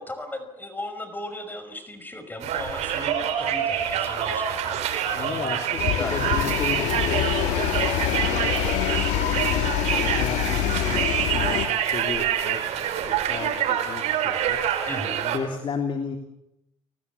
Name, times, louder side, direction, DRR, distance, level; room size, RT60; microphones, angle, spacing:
voice 1, 0.0-5.6 6.0-6.2 7.5-7.8 14.8-15.2, left 1 dB, 15° left, 9 dB, 5.7 m, -37 dB
Conversation, 2.4-15.4, right 9 dB, 70° right, 4.7 m, -26 dB
voice 2, 5.1-7.3 8.1-8.5 9.1-12.6 13.0-14.6 15.2-16.2, left 5 dB, 45° left, 5 dB, 3.2 m, -34 dB
sound 1, 5.8-11.7, left 13 dB, 75° left, 1.9 m, -25 dB
30.0 x 19.5 x 8.5 m, 0.85 s
supercardioid pair, 85°, 12 cm